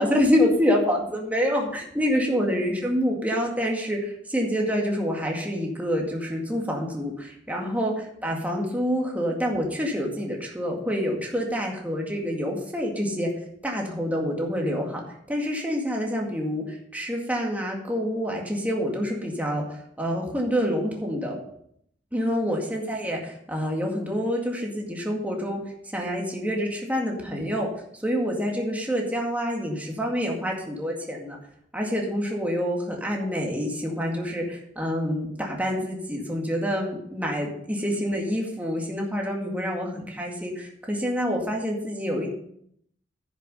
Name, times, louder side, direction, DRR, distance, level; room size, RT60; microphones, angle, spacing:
voice 1, 0.0-13.3 13.6-15.0 15.3-21.4 22.1-25.6 25.9-27.7 28.0-31.4 31.7-42.3, equal, 10° right, 0 dB, 2.0 m, -27 dB
10.0 x 7.0 x 5.5 m, 0.70 s
head